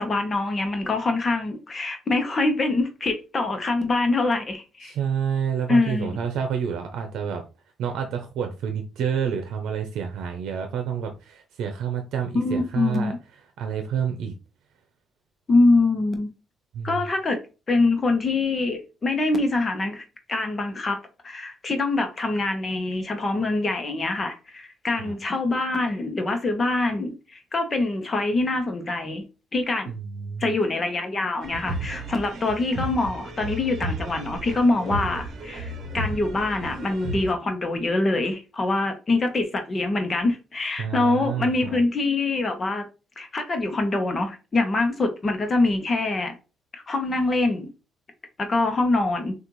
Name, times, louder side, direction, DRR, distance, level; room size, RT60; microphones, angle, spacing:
voice 1, 0.0-4.9 5.7-6.2 12.3-13.2 15.5-16.3 16.8-17.4 17.7-21.0 21.2-29.2 29.5-29.9 30.4-42.8 43.2-46.3 46.7-47.7 48.4-49.3, left 2 dB, 25° left, 0.9 m, -24 dB
voice 2, 4.8-7.4 7.8-13.1 13.6-14.3 16.7-17.0 25.0-25.1 29.9-30.5 40.8-41.8, right 7 dB, 80° right, 0.7 m, -29 dB
sound 1, 31.4-37.3, right 2 dB, 50° right, 1.1 m, -33 dB
6.5 x 2.5 x 3.0 m
cardioid pair, 150°, 0 cm